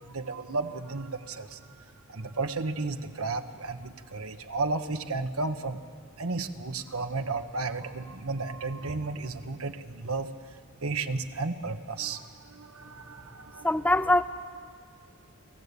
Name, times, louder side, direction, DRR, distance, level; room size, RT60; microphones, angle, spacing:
voice 1, 0.1-1.6 2.1-5.8 6.2-10.3 10.8-13.7, right 3 dB, 70° right, 8 dB, 1.3 m, -33 dB
voice 2, 13.6-14.2, left 1 dB, 5° left, 9 dB, 0.7 m, -22 dB
29.0 x 15.5 x 8.4 m, 2.2 s
head